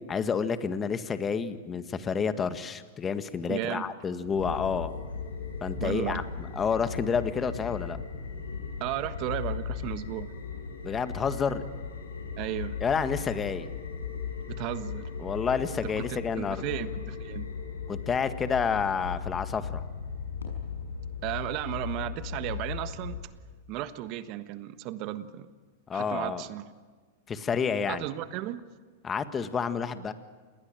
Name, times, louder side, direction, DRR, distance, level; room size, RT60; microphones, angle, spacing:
voice 1, 0.0-4.9 5.6-6.2 6.5-8.0 10.8-11.6 12.8-13.7 15.2-16.6 17.9-19.8 25.9-26.4 27.3-28.1 29.0-30.1, left 6 dB, 20° left, 10 dB, 1.7 m, -29 dB
voice 2, 3.5-3.9 5.7-6.2 8.8-10.3 12.4-12.8 14.5-15.1 15.8-17.5 21.2-23.2 23.7-25.5 25.9-26.7 27.9-28.6, right 14 dB, 45° right, 12 dB, 1.4 m, -34 dB
sound 1, 4.2-23.2, left 6 dB, 85° left, 6.3 m, -37 dB
28.0 x 20.0 x 9.2 m, 1.4 s
hypercardioid pair, 105°, 0 cm